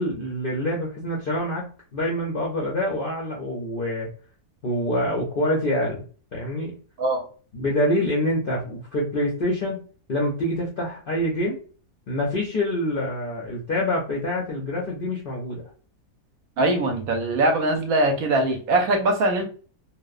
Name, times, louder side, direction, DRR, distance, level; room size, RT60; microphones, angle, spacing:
voice 1, 0.0-4.1 4.6-6.0 6.3-6.7 7.5-9.8 10.1-11.6 12.1-15.6, left 1 dB, 60° left, -4 dB, 0.5 m, -26 dB
voice 2, 16.6-19.5, right 2 dB, 75° right, 3 dB, 1.0 m, -22 dB
2.8 x 2.1 x 2.4 m, 0.40 s
omnidirectional pair, 1.6 m